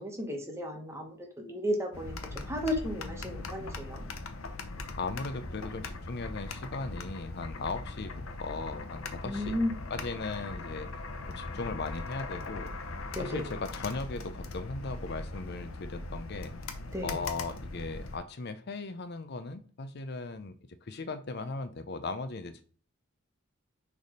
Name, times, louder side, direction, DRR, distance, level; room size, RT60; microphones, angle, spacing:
voice 1, 0.0-2.1 2.5-4.0 9.2-9.7 13.1-13.5 16.9-17.2, equal, 15° right, 2 dB, 1.4 m, -34 dB
sound 1, 1.9-18.2, left 3 dB, 80° left, 0.9 m, -40 dB
voice 2, 3.0-3.8 5.0-8.1 8.4-9.6 9.9-10.9 11.3-12.7 13.2-16.5 17.0-20.5 20.8-22.6, left 3 dB, 55° left, 10 dB, 0.6 m, -38 dB
6.6 x 3.5 x 5.1 m, 0.42 s
head